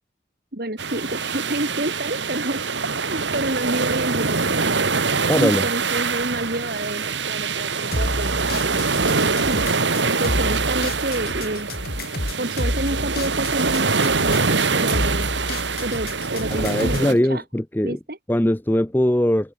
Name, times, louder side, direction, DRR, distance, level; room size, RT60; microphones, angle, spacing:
voice 1, 0.5-2.7 3.0-4.8 5.3-9.6 10.0-11.7 12.4-15.3 15.8-17.4 17.8-18.2, right 1 dB, 55° right, 2.9 m, -29 dB
sound 1, 0.8-17.1, right 4 dB, 85° right, 2.3 m, -24 dB
voice 2, 5.2-5.6 16.5-18.0 18.3-19.5, left 1 dB, 10° left, 0.7 m, -21 dB
sound 2, 7.9-17.1, left 1 dB, 55° left, 3.6 m, -29 dB
head